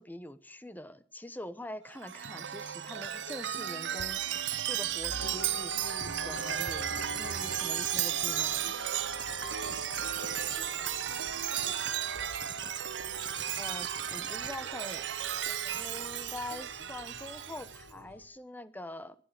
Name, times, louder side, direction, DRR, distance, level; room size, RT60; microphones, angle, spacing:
voice 1, 0.0-4.2 4.6-8.7 13.6-15.1 15.7-19.2, left 1 dB, 10° left, 13 dB, 0.9 m, -44 dB
Chime, 1.9-17.8, right 10 dB, 80° right, 0.8 m, -34 dB
sound 1, 5.1-18.3, left 2 dB, 65° left, 1.3 m, -47 dB
sound 2, 6.3-8.8 9.1-11.1 11.5-12.0 12.4-12.8 13.2-15.7, right 7 dB, 25° right, 0.7 m, -43 dB
voice 2, 10.5-12.5, left 3 dB, 40° left, 3 dB, 4.0 m, -55 dB
22.0 x 11.5 x 4.9 m, 0.42 s
head